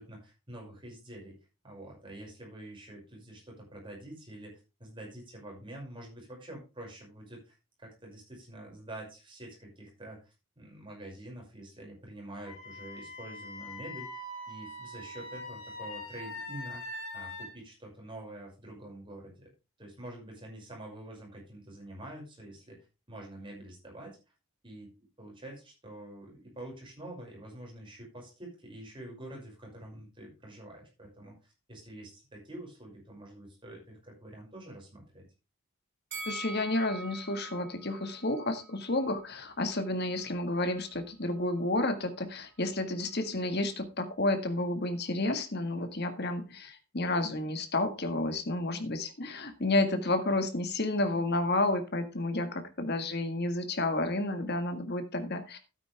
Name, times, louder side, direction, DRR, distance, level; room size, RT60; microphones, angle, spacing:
voice 1, 0.0-1.4 1.6-19.5 19.8-22.8 23.1-24.2 24.6-24.9 25.2-35.3, right 1 dB, 25° right, -1 dB, 6.0 m, -47 dB
Wind instrument woodwind instrument, 12.4-17.5, left 1 dB, 70° left, 3.0 m, -42 dB
Bell, 36.1-39.3 39.6-39.8, right 2 dB, 55° right, 4.4 m, -44 dB
voice 2, 36.3-55.6, left 2 dB, 50° left, 8 dB, 1.8 m, -31 dB
12.5 x 9.4 x 3.5 m, 0.29 s
head